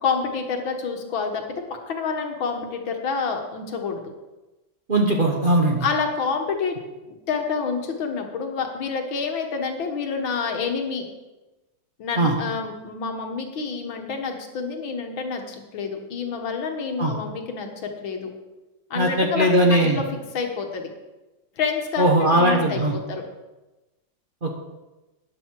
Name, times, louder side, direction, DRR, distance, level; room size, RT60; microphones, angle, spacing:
voice 1, 0.0-1.4 1.9-4.0 5.8-6.8 7.1-11.1 12.0-18.3 18.9-20.0 20.3-20.9 21.6-23.2, left 5 dB, 80° left, 3 dB, 2.2 m, -28 dB
voice 2, 4.9-5.8 12.2-12.3 17.0-17.1 18.9-20.0 22.0-22.9 24.4-24.6, right 1 dB, 30° right, 1 dB, 1.2 m, -19 dB
13.0 x 9.8 x 4.7 m, 1.1 s
omnidirectional pair, 2.1 m